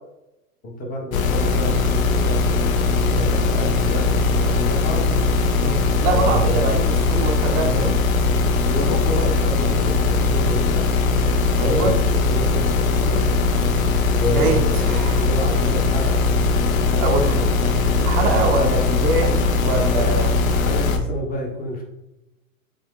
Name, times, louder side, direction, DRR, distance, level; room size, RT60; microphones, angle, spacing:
voice 1, 0.6-5.1 6.0-6.8 8.7-10.9 11.6-13.2 14.1-17.7 19.0-19.1 19.9-21.8, left 1 dB, 20° left, -1 dB, 0.6 m, -29 dB
sound 1, 1.1-21.0, left 3 dB, 75° left, 0.6 m, -20 dB
voice 2, 5.6-8.0 11.6-12.0 14.3-15.3 17.0-17.4 17.9-20.3, right 3 dB, 30° right, 3 dB, 0.4 m, -24 dB
3.4 x 2.2 x 3.4 m, 0.94 s
hypercardioid pair, 110°, 42 cm